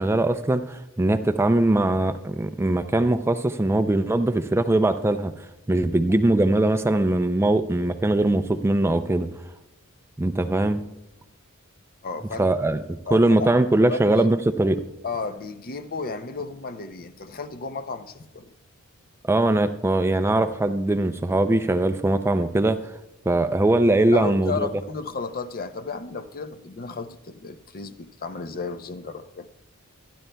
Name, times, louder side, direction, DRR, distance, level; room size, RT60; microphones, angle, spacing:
voice 1, 0.0-9.3 10.2-10.8 12.4-12.8 13.1-14.8 19.3-22.9 23.3-24.7, right 2 dB, 10° right, 0.3 m, -21 dB
voice 2, 12.0-12.5 13.1-13.5 13.8-14.3 15.0-18.5 24.1-29.5, left 4 dB, 40° left, 0.6 m, -33 dB
25.0 x 10.0 x 2.2 m
head